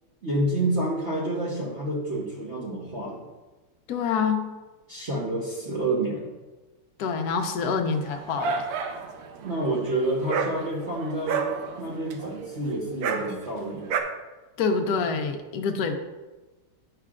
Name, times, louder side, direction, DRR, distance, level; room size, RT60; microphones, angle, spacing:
voice 1, 0.2-3.2 4.9-6.3 9.4-11.4 11.8-14.0, right 1 dB, 45° right, -5 dB, 1.0 m, -28 dB
voice 2, 3.9-4.6 7.0-8.7 14.6-15.9, left 5 dB, 60° left, 5 dB, 1.0 m, -26 dB
Dog, 7.9-14.0, right 5 dB, 75° right, 0.8 m, -31 dB
10.0 x 5.8 x 2.4 m, 1.2 s
omnidirectional pair, 2.4 m